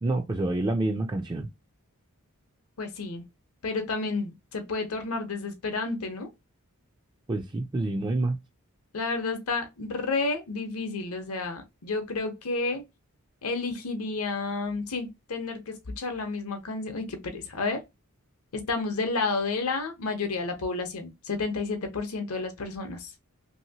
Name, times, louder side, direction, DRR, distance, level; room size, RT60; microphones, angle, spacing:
voice 1, 0.0-1.5 7.3-8.4, right 2 dB, 20° right, 0.3 m, -27 dB
voice 2, 2.8-3.2 3.6-6.3 8.9-12.8 13.4-17.8 18.5-23.1, left 3 dB, 75° left, 0.8 m, -31 dB
2.9 x 2.8 x 2.8 m
head